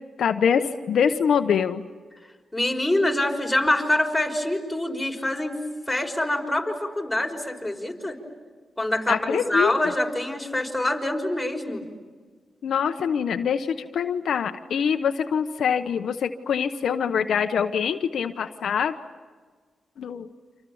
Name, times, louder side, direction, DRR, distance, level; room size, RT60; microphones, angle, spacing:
voice 1, 0.2-1.8 9.1-9.7 12.6-18.9 20.0-20.3, left 7 dB, 80° left, 7 dB, 0.9 m, -24 dB
voice 2, 2.5-5.6 5.9-8.2 8.8-11.8, left 1 dB, 5° left, 1 dB, 5.5 m, -25 dB
29.0 x 26.5 x 7.1 m, 1.5 s
cardioid pair, 65°, 0 cm